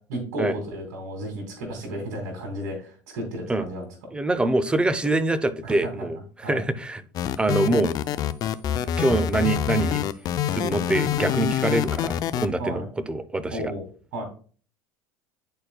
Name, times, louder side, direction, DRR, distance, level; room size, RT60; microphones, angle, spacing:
voice 1, 0.1-3.9 5.6-5.9 6.4-6.6 12.6-12.9 13.5-13.8 14.1-14.2, right 1 dB, 75° right, 2.2 m, -33 dB
voice 2, 4.1-7.0 7.4-7.9 9.0-10.0 10.5-13.7, right 2 dB, 10° right, 0.6 m, -24 dB
sound 1, 7.1-12.5, left 10 dB, 45° left, 0.5 m, -26 dB
10.0 x 4.4 x 2.2 m
supercardioid pair, 100°, 9 cm